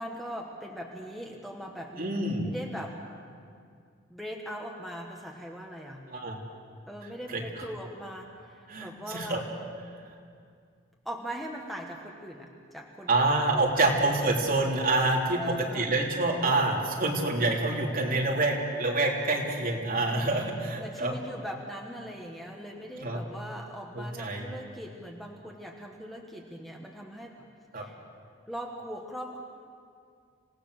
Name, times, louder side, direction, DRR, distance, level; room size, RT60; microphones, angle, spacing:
voice 1, 0.0-2.1 2.4-3.0 4.1-6.1 6.9-9.4 11.0-13.9 14.2-14.3 15.4-16.2 20.1-27.5 27.7-27.9 28.5-29.4, equal, ahead, 0 dB, 1.4 m, -41 dB
voice 2, 2.0-2.5 6.1-6.4 7.3-7.6 8.7-9.4 13.1-21.1 23.0-23.2 23.9-24.5 27.7-27.8, right 2 dB, 45° right, -2 dB, 3.3 m, -27 dB
27.0 x 18.0 x 6.6 m, 2.2 s
head